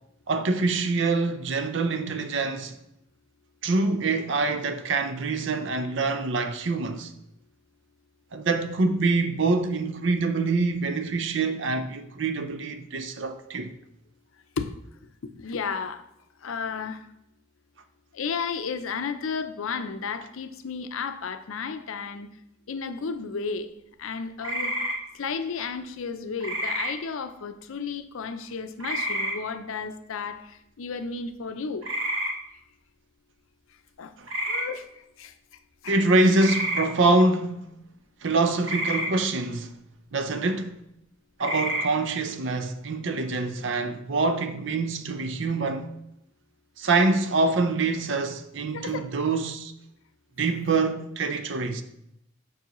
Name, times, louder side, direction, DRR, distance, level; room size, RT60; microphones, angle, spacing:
voice 1, 0.3-2.8 3.6-7.1 8.3-13.7 34.2-34.3 35.9-37.6 38.2-39.7 40.1-40.8 41.4-45.9 46.8-49.7 50.4-51.8, right 3 dB, 65° right, 0.6 m, -25 dB
voice 2, 15.4-16.0 16.4-17.0 18.1-22.3 22.7-24.7 25.2-31.9 34.0-34.1 34.5-34.9 35.2-35.3 35.8-36.0 48.7-49.1, left 5 dB, 80° left, 0.5 m, -33 dB
sound 1, 24.4-25.0 26.4-26.9 28.8-29.3 31.8-32.3 34.3-34.6 36.3-36.8 38.6-39.1 41.4-41.8, right 1 dB, 80° right, 1.4 m, -28 dB
7.1 x 5.4 x 3.0 m
head